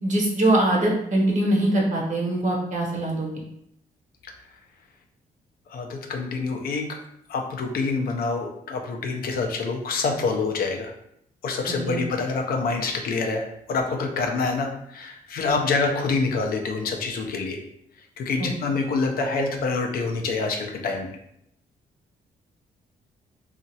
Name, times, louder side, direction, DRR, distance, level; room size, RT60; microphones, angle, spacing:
voice 1, 0.0-3.3 11.7-12.0 18.4-18.5, right 1 dB, 50° right, -2 dB, 1.0 m, -23 dB
voice 2, 5.7-7.0 7.3-10.9 11.4-17.6 18.2-21.1, left 4 dB, 70° left, 3 dB, 0.6 m, -26 dB
2.8 x 2.5 x 2.7 m, 0.74 s
cardioid pair, 80°, 16 cm